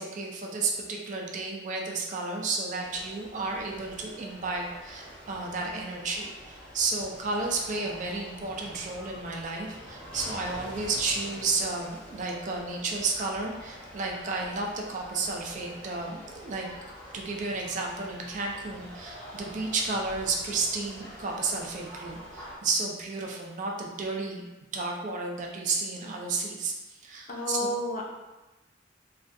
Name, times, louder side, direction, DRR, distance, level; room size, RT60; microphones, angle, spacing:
voice 1, 0.0-16.7 17.1-24.4 24.7-27.7, right 3 dB, 40° right, 0 dB, 0.3 m, -32 dB
sound 1, 2.8-22.6, equal, 5° left, 0.6 m, -46 dB
voice 2, 27.3-28.0, left 1 dB, 45° left, -2 dB, 0.5 m, -30 dB
2.3 x 2.2 x 2.5 m, 1.1 s
head